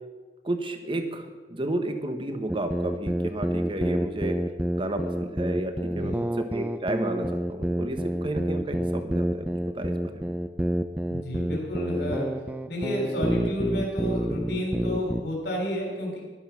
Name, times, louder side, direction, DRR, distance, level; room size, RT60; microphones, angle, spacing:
voice 1, 0.4-4.4 4.7-9.5 9.7-10.3, right 1 dB, 30° right, 7 dB, 1.2 m, -32 dB
sound 1, 2.5-15.2, right 1 dB, 10° right, 0.5 m, -28 dB
voice 2, 5.9-6.3 11.1-12.3 12.7-16.2, equal, 65° left, -1 dB, 3.4 m, -30 dB
12.0 x 11.5 x 5.8 m, 1.4 s
head